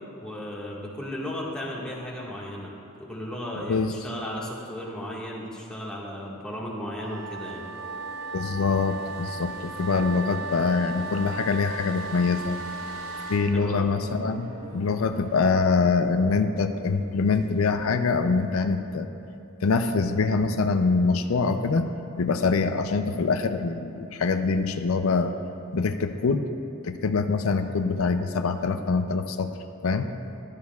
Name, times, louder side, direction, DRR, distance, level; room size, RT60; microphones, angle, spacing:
voice 1, 0.1-2.7 3.0-7.6 13.5-13.9, left 1 dB, 5° left, -5 dB, 1.7 m, -35 dB
sound 1, 7.0-13.4, right 3 dB, 85° right, 1.8 m, -36 dB
sound 2, 7.2-18.8, right 1 dB, 70° right, 1.6 m, -50 dB
voice 2, 8.3-12.6 13.3-19.1 19.6-21.9 22.2-25.3 25.7-26.4 26.8-29.5 29.8-30.1, left 4 dB, 80° left, 8 dB, 0.5 m, -24 dB
14.0 x 12.5 x 2.4 m, 3.0 s
head